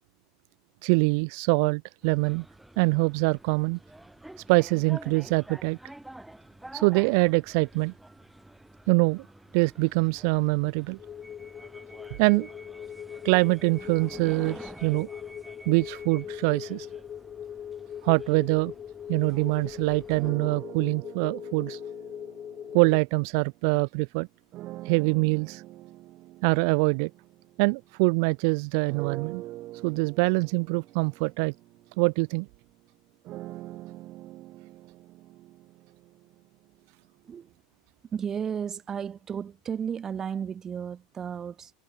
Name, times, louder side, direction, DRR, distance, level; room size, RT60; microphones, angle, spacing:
voice 1, 0.8-2.4 2.8-3.8 4.5-5.8 6.7-7.9 8.9-9.2 9.5-11.0 12.2-12.5 13.2-15.1 15.7-16.9 18.0-18.7 19.1-21.8 22.7-24.3 24.8-25.6 26.4-27.1 27.6-29.4 29.8-31.5 32.0-32.5, right 34 dB, 55° right, 1.2 m, -24 dB
sound 1, 2.0-20.3, right 1 dB, 5° right, 3.4 m, -49 dB
sound 2, 11.0-23.0, left 9 dB, 25° left, 1.3 m, -40 dB
sound 3, 20.2-23.7 24.5-28.3 28.9-36.8, right 16 dB, 35° right, 3.3 m, -44 dB
voice 2, 38.1-41.7, right 7 dB, 20° right, 2.4 m, -33 dB
supercardioid pair, 160°, 2 cm